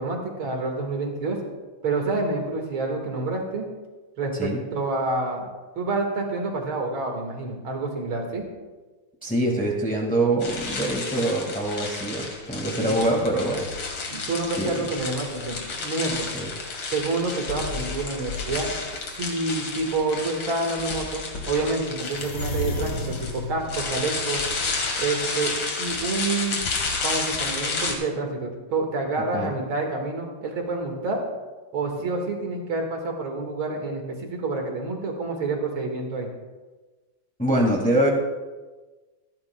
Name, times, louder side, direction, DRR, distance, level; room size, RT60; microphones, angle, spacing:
voice 1, 0.0-1.4 1.8-3.6 4.2-5.5 5.8-8.4 12.8-13.0 14.1-16.3 16.9-18.7 19.1-24.4 25.0-26.7 27.0-31.2 31.7-36.3, right 3 dB, 80° right, 2 dB, 2.6 m, -28 dB
voice 2, 9.2-13.7 14.6-14.8 16.3-16.5 29.3-29.5 37.4-38.1, right 1 dB, 5° left, -1 dB, 1.5 m, -24 dB
sound 1, 10.4-27.9, left 4 dB, 90° left, 2.6 m, -31 dB
sound 2, 13.0-15.1 15.7-16.3 16.8-16.9 17.5-19.0 19.8-20.0 20.5-20.6 20.8-25.9 26.2-26.3, left 2 dB, 55° left, 2.3 m, -36 dB
25.5 x 10.5 x 2.2 m, 1.3 s
omnidirectional pair, 2.2 m